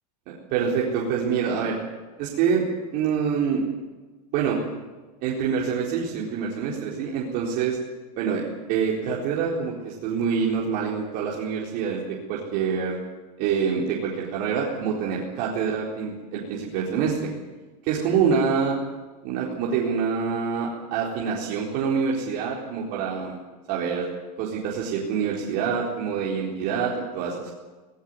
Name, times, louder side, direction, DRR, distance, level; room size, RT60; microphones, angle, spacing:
voice 1, 0.3-1.8 2.2-2.7 2.9-3.6 4.3-4.6 5.2-7.8 8.2-8.4 8.7-13.0 13.4-17.3 17.8-18.8 19.2-23.4 23.7-24.1 24.4-27.6, right 6 dB, 50° right, -3 dB, 4.3 m, -26 dB
18.5 x 17.5 x 9.7 m, 1.3 s
supercardioid pair, 150°, 21 cm